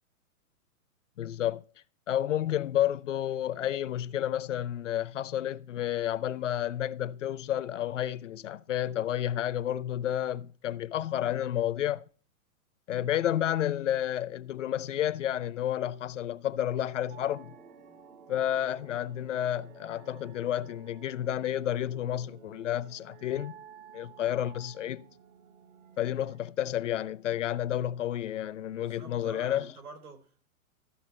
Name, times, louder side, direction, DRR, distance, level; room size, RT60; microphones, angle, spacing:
voice 1, 1.2-1.6 2.1-12.0 12.9-17.5 18.3-23.6 23.9-25.1 26.0-29.7, left 11 dB, 55° left, 0.6 m, -31 dB
sound 1, 17.1-26.4, right 7 dB, 70° right, 2.3 m, -53 dB
voice 2, 28.7-30.5, right 4 dB, 85° right, 3.3 m, -47 dB
14.0 x 5.6 x 4.3 m
hypercardioid pair, 170°, 44 cm